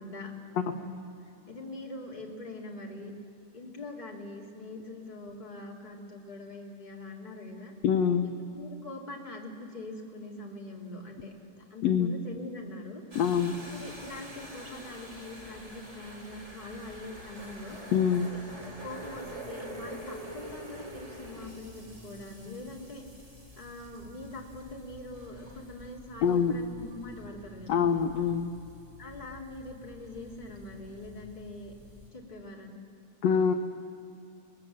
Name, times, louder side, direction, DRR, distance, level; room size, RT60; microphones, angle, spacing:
voice 1, 0.0-3.1 3.5-7.7 8.2-13.0 13.6-17.8 18.3-23.0 23.6-27.9 29.0-31.7 32.1-32.7, left 2 dB, 15° left, -2 dB, 2.3 m, -43 dB
voice 2, 7.8-8.3 11.8-12.1 13.1-13.6 17.9-18.3 26.2-26.5 27.7-28.5 33.2-33.5, left 7 dB, 75° left, 6 dB, 1.6 m, -25 dB
sound 1, 13.1-32.1, equal, 10° right, 2.3 m, -47 dB
23.5 x 20.5 x 7.5 m, 2.4 s
omnidirectional pair, 3.7 m